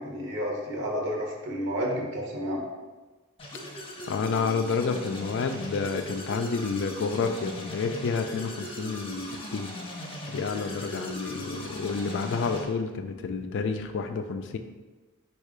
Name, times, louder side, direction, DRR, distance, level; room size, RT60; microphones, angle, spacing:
voice 1, 0.0-2.6, equal, 60° right, -1 dB, 0.9 m, -31 dB
sound 1, 3.4-12.6, left 1 dB, 25° left, 0.8 m, -39 dB
voice 2, 4.1-9.7 10.3-14.6, left 5 dB, 60° left, 7 dB, 0.4 m, -29 dB
4.5 x 2.4 x 4.8 m, 1.3 s
head